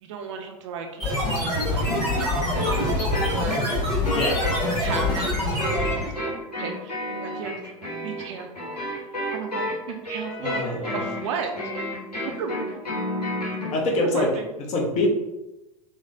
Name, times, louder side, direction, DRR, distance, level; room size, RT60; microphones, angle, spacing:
voice 1, 0.0-3.6 4.3-5.6 5.9-6.3 6.6-7.5 8.0-8.8 9.3-10.6 10.9-11.5 11.8-11.9 12.2-12.8 13.9-14.5, right 6 dB, 50° right, 4 dB, 0.4 m, -35 dB
sound 1, 1.0-6.2, left 1 dB, 20° left, 1.4 m, -25 dB
sound 2, 1.8-13.8, left 1 dB, 90° left, 0.8 m, -31 dB
voice 2, 10.4-11.0 13.7-14.3 14.7-15.1, left 2 dB, 35° left, -1 dB, 0.7 m, -24 dB
3.2 x 2.0 x 2.6 m, 0.97 s
figure-of-eight pair, 95°, 20 cm